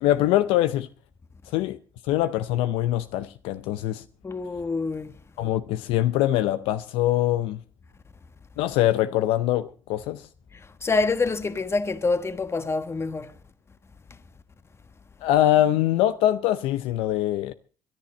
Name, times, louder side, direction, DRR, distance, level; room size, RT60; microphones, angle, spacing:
voice 1, 0.0-0.9 1.5-1.8 2.1-4.0 5.4-7.6 8.6-10.2 15.2-17.5, left 13 dB, 70° left, 0.6 m, -23 dB
voice 2, 4.2-5.1 10.8-13.3, left 3 dB, 25° left, 1.3 m, -26 dB
23.0 x 10.5 x 4.2 m
hypercardioid pair, 60°, 10 cm